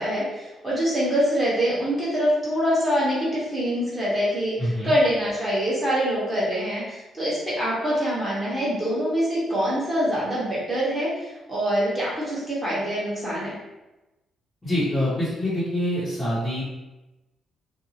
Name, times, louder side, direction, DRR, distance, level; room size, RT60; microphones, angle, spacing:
voice 1, 0.0-4.6 4.8-13.5, equal, 15° right, -8 dB, 1.1 m, -24 dB
voice 2, 4.6-4.9 14.6-16.6, left 1 dB, 15° left, -12 dB, 0.8 m, -25 dB
2.6 x 2.1 x 2.8 m, 1.0 s
cardioid pair, 135°, 0 cm